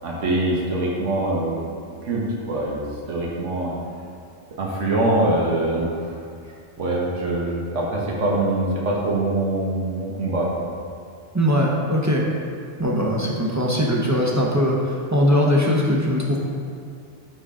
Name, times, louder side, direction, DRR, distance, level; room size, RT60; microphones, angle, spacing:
voice 1, 0.0-1.6 2.0-2.8 3.1-3.7 4.6-6.1 6.8-10.5, right 2 dB, 90° right, -3 dB, 1.4 m, -23 dB
voice 2, 11.3-12.3 12.8-16.4, equal, 20° right, -3 dB, 0.6 m, -20 dB
8.8 x 3.8 x 3.7 m, 2.4 s
omnidirectional pair, 1.2 m